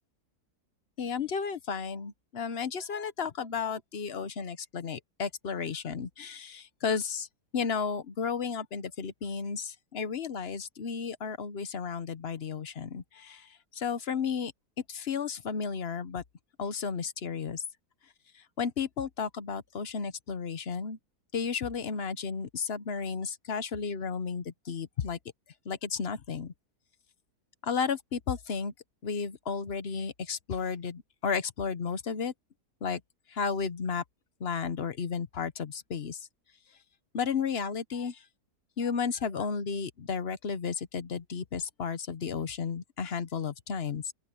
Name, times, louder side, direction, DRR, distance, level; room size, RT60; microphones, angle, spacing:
voice 1, 1.0-7.3 7.5-13.5 13.7-14.5 14.9-16.2 16.6-17.6 18.6-21.0 21.3-25.2 25.7-26.5 27.6-28.7 29.0-32.3 32.8-33.0 33.3-34.0 34.4-36.2 37.1-38.2 38.8-44.1, left 6 dB, 45° left, 1.0 m, -33 dB
open air
omnidirectional pair, 1.7 m